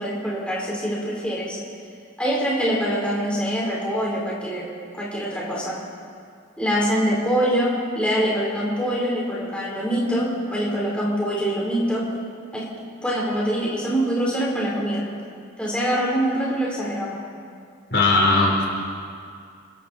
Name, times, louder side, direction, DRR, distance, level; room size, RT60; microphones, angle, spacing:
voice 1, 0.0-1.6 2.2-4.7 4.9-5.8 6.6-12.1 12.5-12.7 13.0-15.1 15.6-17.2, equal, 5° left, -5 dB, 4.1 m, -24 dB
voice 2, 17.9-18.6, left 3 dB, 50° left, -1 dB, 3.8 m, -18 dB
30.0 x 20.5 x 4.4 m, 2.3 s
head